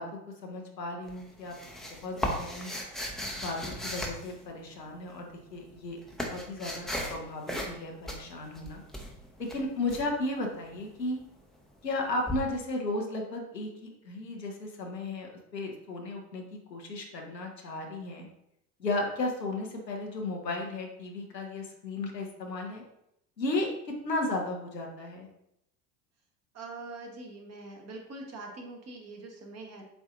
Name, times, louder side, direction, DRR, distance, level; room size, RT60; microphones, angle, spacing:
voice 1, 0.0-1.6 2.0-2.7 3.3-8.8 9.4-11.2 11.8-18.3 18.8-22.8 23.4-23.7 24.0-25.3, left 2 dB, 90° left, 1 dB, 1.0 m, -35 dB
sound 1, 1.1-4.9 5.6-7.2 7.5-7.8 8.1-10.0 12.3-12.4, equal, ahead, 0.7 m, -36 dB
voice 2, 26.5-29.8, right 2 dB, 30° right, 1 dB, 1.2 m, -43 dB
7.8 x 2.6 x 2.6 m, 0.80 s
figure-of-eight pair, 75°, 48 cm